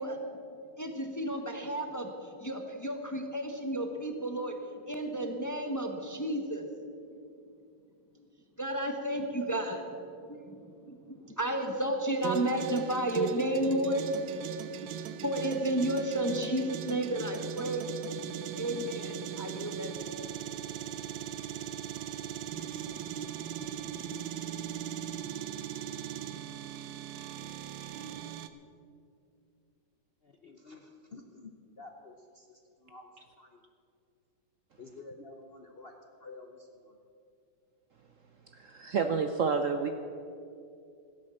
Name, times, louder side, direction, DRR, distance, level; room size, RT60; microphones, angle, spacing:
voice 1, 0.0-4.5 4.9-6.7 8.6-10.0 10.3-17.9 18.6-19.9 20.2-20.3, right 1 dB, 15° left, 5 dB, 0.7 m, -32 dB
sound 1, 12.2-28.5, right 10 dB, 85° right, 1.4 m, -39 dB
voice 2, 30.2-31.5 31.8-33.1 33.4-33.6 34.8-37.0, left 3 dB, 50° left, 4 dB, 0.8 m, -50 dB
voice 3, 38.5-39.9, right 5 dB, 65° right, 7 dB, 0.8 m, -29 dB
16.0 x 8.7 x 7.5 m, 2.5 s
omnidirectional pair, 2.0 m